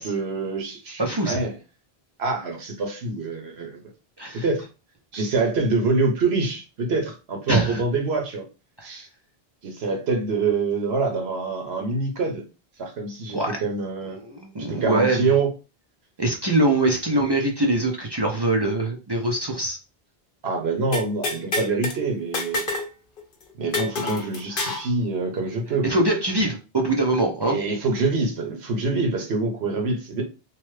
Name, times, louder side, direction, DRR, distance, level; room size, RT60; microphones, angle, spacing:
voice 1, 0.0-1.5 2.2-3.8 4.3-4.6 5.1-8.4 8.8-9.1 9.6-12.4 12.8-14.2 14.7-15.5 20.4-22.6 23.6-26.0 27.4-30.2, right 3 dB, 80° right, 3 dB, 1.1 m, -25 dB
voice 2, 1.0-1.4 4.2-4.4 7.5-7.8 8.8-8.9 13.3-13.6 14.1-15.3 16.2-19.8 24.6-24.7 25.8-27.6, right 2 dB, 40° right, 0 dB, 0.4 m, -23 dB
sound 1, 20.9-22.0 22.3-22.9 23.2-23.3 23.7-24.9, left 3 dB, 60° left, 0.9 m, -27 dB
2.9 x 2.1 x 3.1 m, 0.30 s
omnidirectional pair, 1.1 m